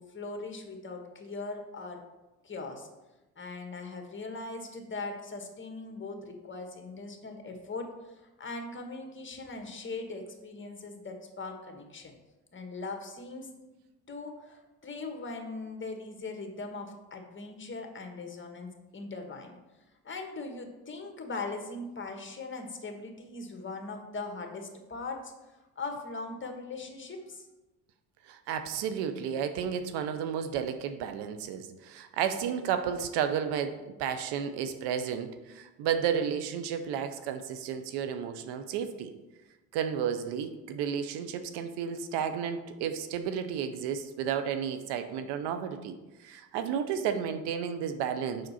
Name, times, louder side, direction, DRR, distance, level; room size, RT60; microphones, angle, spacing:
voice 1, 0.0-2.0 2.4-2.9 3.4-12.2 12.5-13.5 14.1-19.6 20.0-25.3 25.7-27.5, left 3 dB, 30° left, 4 dB, 1.4 m, -40 dB
voice 2, 28.3-39.1 39.7-45.9 46.2-48.5, right 8 dB, 85° right, 9 dB, 0.7 m, -32 dB
6.5 x 5.9 x 4.2 m, 1.1 s
supercardioid pair, 70°, 39 cm